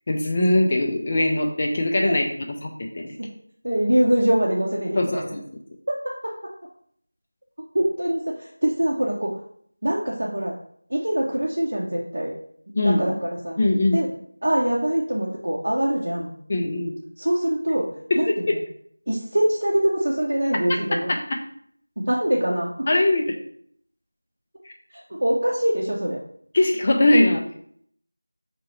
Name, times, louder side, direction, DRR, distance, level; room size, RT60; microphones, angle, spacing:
voice 1, 0.1-2.3 2.6-3.1 5.0-5.4 12.8-13.0 13.6-14.0 16.5-16.9 18.1-18.6 21.1-21.4 22.9-23.3 26.5-27.4, left 1 dB, 25° left, 2 dB, 0.3 m, -21 dB
voice 2, 3.6-5.2 5.9-6.3 7.7-9.4 9.8-10.6 10.9-12.3 12.8-13.6 13.9-14.1 14.4-16.3 17.2-17.9 18.2-18.6 19.1-21.1 22.0-22.9 24.9-26.2, right 1 dB, 55° right, -3 dB, 0.6 m, -23 dB
5.1 x 2.7 x 2.9 m, 0.64 s
figure-of-eight pair, 170°, 0 cm